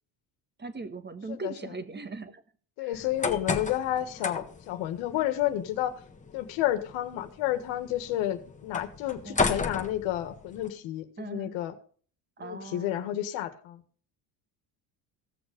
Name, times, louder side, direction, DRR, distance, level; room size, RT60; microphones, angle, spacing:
voice 1, 0.6-2.4 2.8-3.1 9.2-9.6 11.2-11.6 12.4-13.1, right 3 dB, 20° right, 10 dB, 1.5 m, -40 dB
voice 2, 2.8-6.0 6.3-11.7 12.4-13.8, left 13 dB, 75° left, 8 dB, 1.7 m, -31 dB
sound 1, 2.9-10.7, left 4 dB, 15° left, 1.5 m, -35 dB
16.0 x 6.7 x 5.1 m, 0.44 s
supercardioid pair, 100°, 47 cm